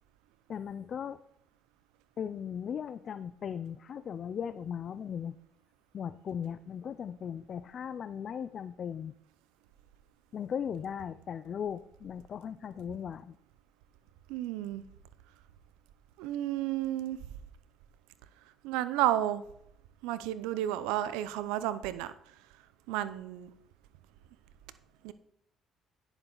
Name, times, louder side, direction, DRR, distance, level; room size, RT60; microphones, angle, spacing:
voice 1, 0.5-1.2 2.2-5.4 5.9-9.1 10.3-13.4, left 8 dB, 55° left, 13 dB, 0.4 m, -37 dB
voice 2, 14.3-14.8 16.2-17.2 18.6-19.4 20.0-22.1 22.9-23.5 25.0-25.1, right 13 dB, 85° right, 14 dB, 0.6 m, -32 dB
10.0 x 7.0 x 4.0 m, 0.73 s
supercardioid pair, 70°, 0 cm